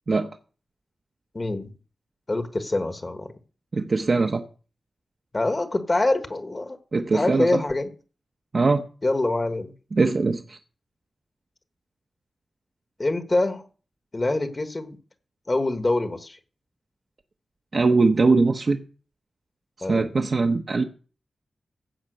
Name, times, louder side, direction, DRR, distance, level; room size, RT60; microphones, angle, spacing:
voice 1, 1.3-1.7 2.3-3.3 5.3-6.8 7.1-7.9 9.0-9.7 13.0-13.6 14.1-15.0 15.5-16.4 19.8-20.1, left 2 dB, 25° left, 1.3 m, -25 dB
voice 2, 3.7-4.4 6.9-7.6 8.5-8.8 9.9-10.6 17.7-18.8 19.8-20.8, right 3 dB, 40° right, 0.8 m, -21 dB
15.5 x 5.8 x 7.8 m
wide cardioid pair, 165°, 0 cm